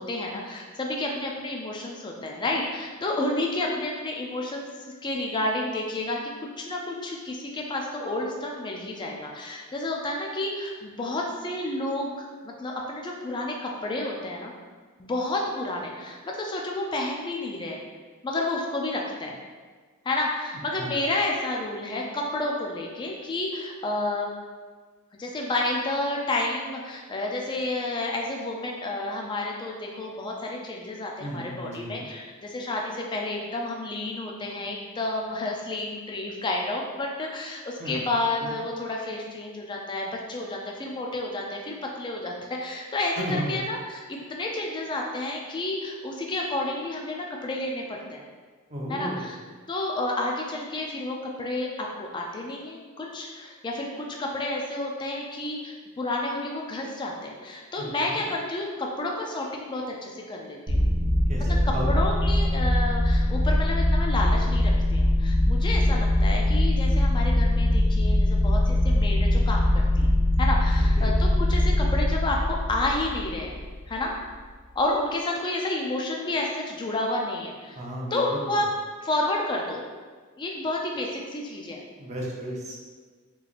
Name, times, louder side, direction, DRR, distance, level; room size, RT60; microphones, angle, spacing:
voice 1, 0.0-4.7 5.0-14.5 15.0-17.8 18.2-19.4 20.0-24.3 25.2-48.2 48.9-49.4 49.7-60.8 61.4-70.1 70.4-73.6 73.9-74.1 74.8-77.8 78.1-78.7 79.0-79.8 80.4-81.8, left 2 dB, 20° left, -1 dB, 0.3 m, -30 dB
voice 2, 31.2-32.1 37.8-37.9 38.4-38.5 43.2-43.6 48.7-49.3 57.8-58.2 61.3-61.9 71.0-71.1 77.8-78.4 82.0-82.8, equal, 30° right, -3 dB, 0.7 m, -33 dB
sound 1, 60.7-74.0, left 1 dB, 55° right, 1.0 m, -22 dB
3.7 x 3.3 x 2.4 m, 1.5 s
head